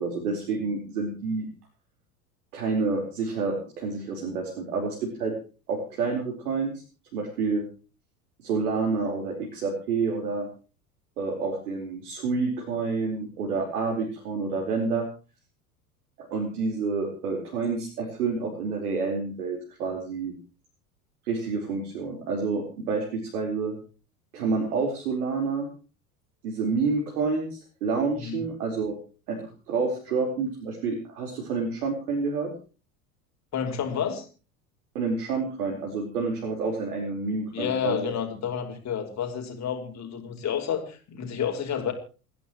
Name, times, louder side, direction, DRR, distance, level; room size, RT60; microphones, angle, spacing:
voice 1, 0.0-1.5 2.5-5.3 5.7-6.7 7.1-7.6 8.4-10.5 11.2-15.1 16.2-20.3 21.2-23.7 24.3-25.7 26.4-28.9 29.3-29.4 29.7-32.5 34.9-38.1, right 4 dB, 70° right, 0 dB, 4.6 m, -28 dB
voice 2, 33.5-34.3 37.5-41.9, left 8 dB, 35° left, 4 dB, 5.4 m, -30 dB
29.0 x 11.5 x 3.1 m, 0.37 s
hypercardioid pair, 75°, 45 cm